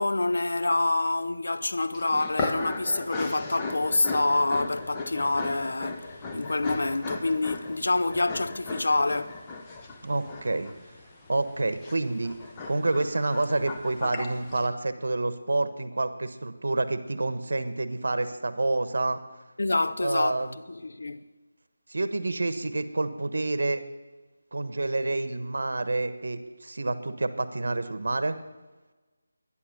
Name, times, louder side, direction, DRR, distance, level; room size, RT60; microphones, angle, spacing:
voice 1, 0.0-9.4 19.6-21.2, left 2 dB, 75° left, 0.7 m, -27 dB
sound 1, 1.9-14.7, left 3 dB, 15° left, 1.0 m, -37 dB
voice 2, 10.0-10.7 11.3-12.4 12.7-19.2 20.0-20.6 21.9-23.8 24.5-28.3, right 2 dB, 70° right, 1.1 m, -28 dB
11.5 x 10.0 x 6.7 m
figure-of-eight pair, 165°, 0 cm